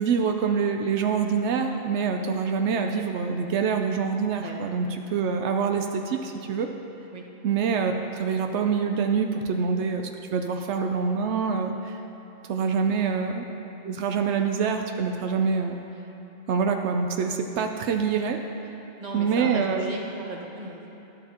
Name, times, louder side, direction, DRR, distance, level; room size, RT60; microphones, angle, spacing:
voice 1, 0.0-6.7 7.4-12.0 12.5-13.4 13.8-15.8 16.5-18.4 19.1-19.9, right 6 dB, 85° right, 5 dB, 0.9 m, -25 dB
voice 2, 19.0-20.9, right 2 dB, 40° right, -1 dB, 1.1 m, -36 dB
13.0 x 11.0 x 2.9 m, 3.0 s
omnidirectional pair, 1.1 m